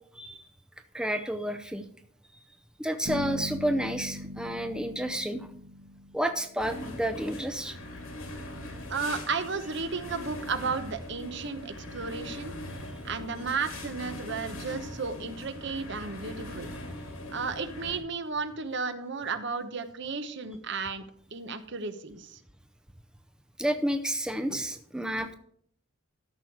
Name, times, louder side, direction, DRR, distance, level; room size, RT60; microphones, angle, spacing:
voice 1, 0.9-1.9 2.8-5.5 6.1-7.8 23.6-25.3, right 1 dB, 5° right, 7 dB, 0.6 m, -30 dB
sound 1, 3.1-6.8, left 1 dB, 85° right, 2.2 m, -39 dB
sound 2, 6.6-18.0, left 1 dB, 85° left, 2.7 m, -41 dB
voice 2, 8.9-12.5 13.0-16.7 17.3-21.0 21.3-22.4, right 4 dB, 60° right, 10 dB, 1.0 m, -33 dB
13.0 x 6.3 x 4.7 m, 0.63 s
head